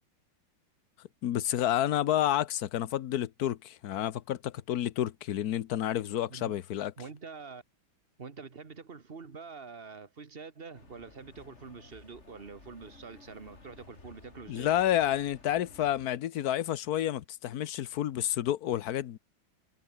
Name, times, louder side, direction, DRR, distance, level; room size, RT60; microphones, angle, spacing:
voice 1, 1.2-6.9 14.5-19.2, left 12 dB, 60° left, 1.2 m, -30 dB
voice 2, 7.0-7.6 8.2-14.7, right 5 dB, 30° right, 1.7 m, -46 dB
sound 1, 10.7-16.1, left 3 dB, 35° left, 3.4 m, -55 dB
omnidirectional pair, 2.2 m